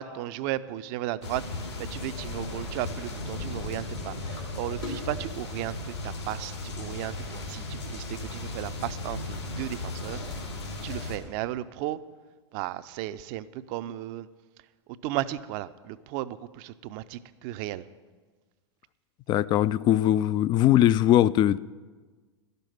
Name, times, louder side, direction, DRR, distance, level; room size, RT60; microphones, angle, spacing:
voice 1, 0.0-1.4 1.8-10.4 10.8-12.0 12.5-14.3 15.0-17.8, right 14 dB, 50° right, 0.5 m, -35 dB
sound 1, 1.2-11.2, left 2 dB, 85° left, 2.9 m, -36 dB
voice 2, 19.3-21.6, left 12 dB, 30° left, 0.4 m, -21 dB
12.0 x 6.7 x 9.3 m
hypercardioid pair, 95°, 14 cm